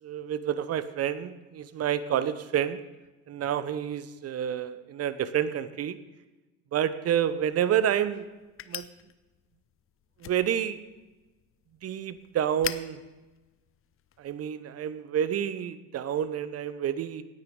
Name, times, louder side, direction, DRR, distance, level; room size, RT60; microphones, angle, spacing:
voice 1, 0.0-2.8 3.3-6.0 6.7-8.3 8.7-8.9 10.2-10.8 11.8-13.0 14.2-17.2, right 9 dB, 35° right, 15 dB, 0.9 m, -29 dB
sound 1, 7.2-14.4, left 11 dB, 30° left, 0.7 m, -44 dB
17.0 x 9.7 x 3.8 m, 1.2 s
hypercardioid pair, 70°, 42 cm